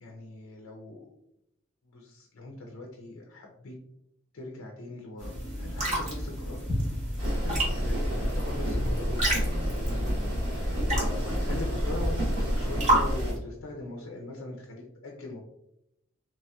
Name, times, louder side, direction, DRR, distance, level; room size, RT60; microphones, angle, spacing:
voice 1, 0.0-1.1 1.9-3.7 4.3-6.6 7.1-9.2 9.6-15.4, left 2 dB, 70° left, 0 dB, 0.5 m, -41 dB
sound 1, 5.2-13.4, right 1 dB, 35° right, 1.0 m, -31 dB
sound 2, 7.2-13.3, equal, 60° right, 1.3 m, -30 dB
3.0 x 2.8 x 2.2 m, 0.81 s
head